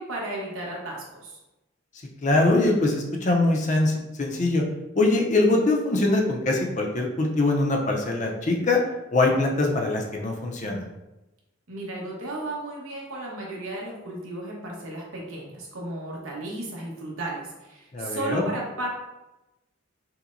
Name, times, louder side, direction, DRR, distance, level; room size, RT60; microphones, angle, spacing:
voice 1, 0.0-1.4 11.7-18.9, right 2 dB, 85° right, -3 dB, 1.1 m, -34 dB
voice 2, 2.2-3.9 4.2-4.6 5.0-8.8 9.1-10.8 17.9-18.5, left 2 dB, 35° left, 1 dB, 0.5 m, -22 dB
5.6 x 2.2 x 2.6 m, 0.99 s
head